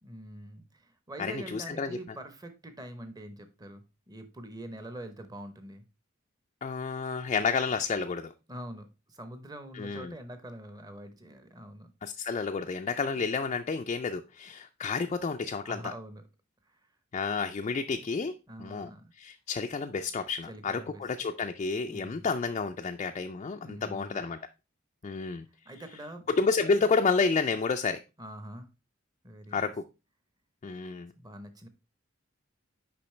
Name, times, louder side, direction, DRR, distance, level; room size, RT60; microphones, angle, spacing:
voice 1, 0.0-5.8 8.5-11.9 15.7-16.2 16.7-16.8 18.5-19.1 20.5-21.0 21.9-22.3 23.6-24.2 25.6-26.3 28.2-28.7 29.2-29.7 31.1-31.7, right 1 dB, 20° right, 0.8 m, -44 dB
voice 2, 1.2-2.0 6.6-8.3 9.7-10.1 12.0-15.8 17.1-18.3 18.6-24.4 25.0-25.4 26.3-28.0 29.5-29.9 30.6-31.1, left 4 dB, 35° left, 0.3 m, -30 dB
6.9 x 5.1 x 3.2 m
head